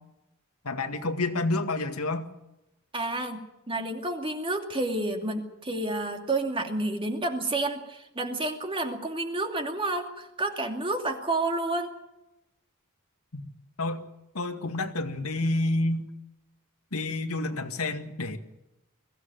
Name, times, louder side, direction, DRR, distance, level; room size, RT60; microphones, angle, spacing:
voice 1, 0.6-2.3 13.3-13.5 13.8-14.0 14.3-16.1 16.9-18.4, left 2 dB, 85° left, 6 dB, 2.1 m, -29 dB
voice 2, 2.9-11.9, right 2 dB, 25° right, 4 dB, 2.6 m, -30 dB
22.5 x 16.0 x 9.2 m, 0.92 s
head